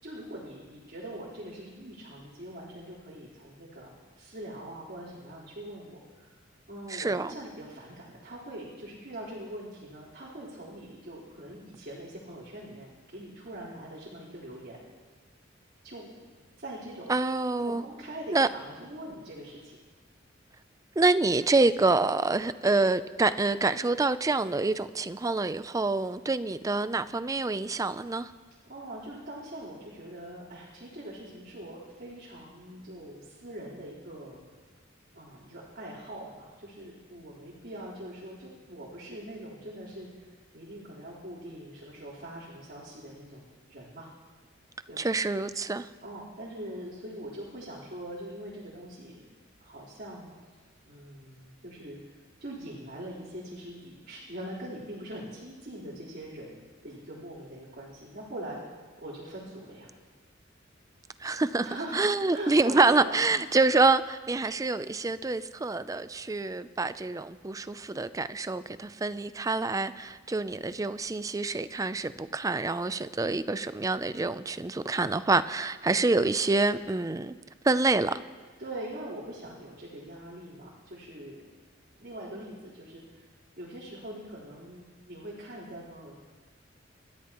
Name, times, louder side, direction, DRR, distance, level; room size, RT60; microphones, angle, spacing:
voice 1, 0.0-3.9 4.2-6.4 6.7-14.8 15.8-16.1 16.6-17.1 17.6-19.8 28.7-34.4 35.1-44.1 44.9-45.1 46.0-49.3 49.6-50.3 50.9-56.6 56.8-59.9 61.6-62.0 62.3-63.5 78.6-81.4 82.0-83.2 83.6-86.2, right 1 dB, 50° right, 3.9 m, -42 dB
voice 2, 6.9-7.3 17.1-17.8 18.3-18.5 21.0-28.3 45.0-45.9 61.2-61.7 61.9-77.3 77.6-78.2, right 3 dB, 15° right, 0.4 m, -26 dB
28.5 x 13.5 x 3.0 m
head